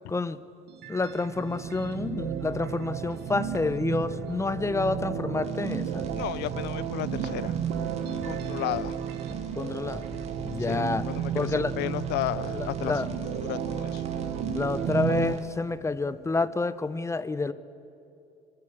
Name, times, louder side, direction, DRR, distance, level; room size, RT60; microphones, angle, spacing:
voice 1, 0.1-0.4 0.9-6.0 9.5-10.0 10.4-11.1 11.3-11.7 12.5-13.1 14.5-17.5, left 3 dB, 15° left, 15 dB, 0.7 m, -29 dB
sound 1, 0.7-15.3, right 8 dB, 80° right, 1.3 m, -32 dB
sound 2, 5.4-15.4, right 4 dB, 40° right, 2.4 m, -53 dB
sound 3, 6.0-14.8, left 2 dB, 65° left, 4.0 m, -46 dB
voice 2, 6.1-7.5 8.2-9.0 10.6-14.0, left 17 dB, 90° left, 20 dB, 0.5 m, -34 dB
26.0 x 12.5 x 8.5 m, 2.6 s
cardioid pair, 110°, 17 cm